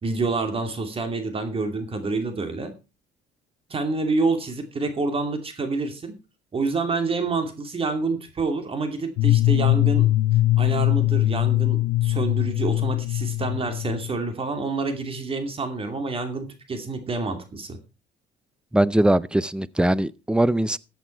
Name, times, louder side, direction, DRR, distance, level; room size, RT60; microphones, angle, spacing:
voice 1, 0.0-2.7 3.7-6.1 6.5-10.1 10.6-17.8, right 3 dB, 35° right, 2.5 m, -27 dB
sound 1, 9.2-14.3, left 16 dB, 85° left, 0.6 m, -21 dB
voice 2, 18.7-20.8, right 1 dB, 5° right, 0.6 m, -21 dB
14.0 x 8.3 x 4.5 m
cardioid pair, 110°, 17 cm